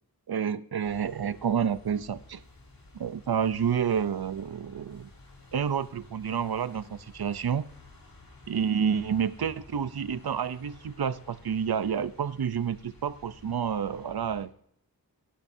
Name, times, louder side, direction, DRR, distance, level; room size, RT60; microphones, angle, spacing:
voice 1, 0.3-2.4 2.9-5.1 5.5-7.7 8.5-14.5, right 7 dB, 75° right, 14 dB, 0.7 m, -29 dB
sound 1, 0.8-14.5, left 2 dB, 65° left, 4.0 m, -53 dB
22.5 x 11.5 x 2.7 m, 0.69 s
wide cardioid pair, 60°, 38 cm